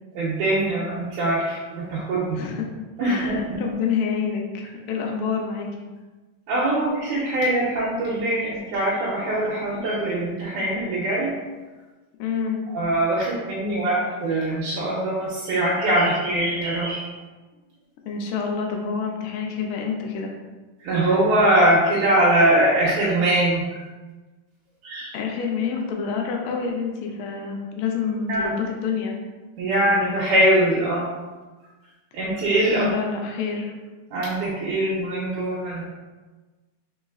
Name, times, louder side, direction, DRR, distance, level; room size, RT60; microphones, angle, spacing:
voice 1, 0.2-2.4 3.0-3.6 6.5-11.3 12.7-17.1 20.8-23.8 24.8-25.1 28.3-28.5 29.6-31.1 32.1-32.9 34.1-35.8, right 1 dB, 75° right, -6 dB, 2.1 m, -22 dB
voice 2, 2.3-2.7 3.0-5.9 12.2-12.6 18.1-20.3 25.1-29.1 32.8-33.7, left 6 dB, 80° left, 1 dB, 2.1 m, -27 dB
4.5 x 4.1 x 2.3 m, 1.2 s
omnidirectional pair, 3.7 m